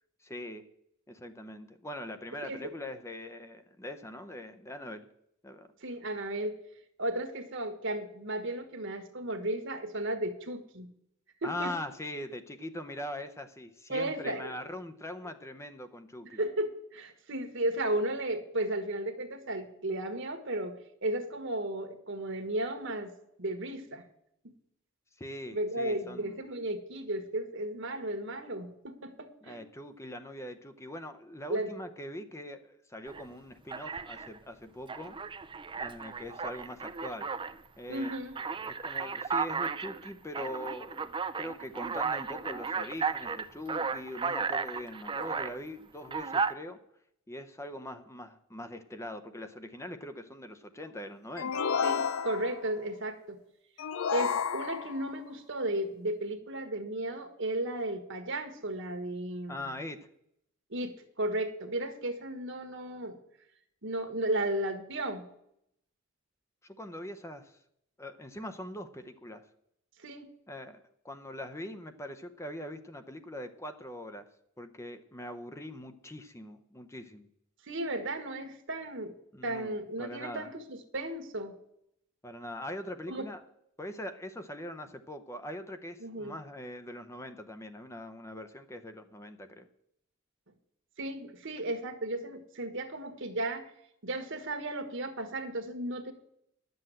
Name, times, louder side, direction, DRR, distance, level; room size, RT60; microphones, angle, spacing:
voice 1, 0.2-0.7 1.1-5.1 5.4-5.7 11.4-16.5 25.2-26.4 29.4-35.2 35.8-37.3 37.8-38.1 38.5-41.1 41.4-46.8 47.3-51.6 59.5-60.1 66.6-67.6 68.0-69.5 70.5-74.2 74.6-77.3 79.3-80.5 82.2-83.4 83.8-89.7, left 1 dB, 15° left, 9 dB, 0.7 m, -42 dB
voice 2, 5.8-6.5 7.0-10.9 11.4-11.7 13.9-14.5 16.3-20.7 21.0-23.1 23.4-24.0 25.5-29.6 31.5-31.7 37.9-38.4 51.8-53.4 54.1-59.7 60.7-63.2 63.8-65.2 70.0-70.3 77.6-79.1 79.4-81.6 83.1-83.3 86.0-86.3 91.0-93.7 94.0-96.1, right 1 dB, 65° right, 9 dB, 1.5 m, -34 dB
Alarm, 33.1-33.2 33.7-34.4 34.9-37.6 38.0-45.6 46.0-46.5, right 5 dB, 25° right, 0.5 m, -34 dB
sound 1, 51.4-52.7 53.8-55.1, left 6 dB, 85° left, 0.5 m, -31 dB
11.5 x 7.8 x 7.7 m, 0.75 s
head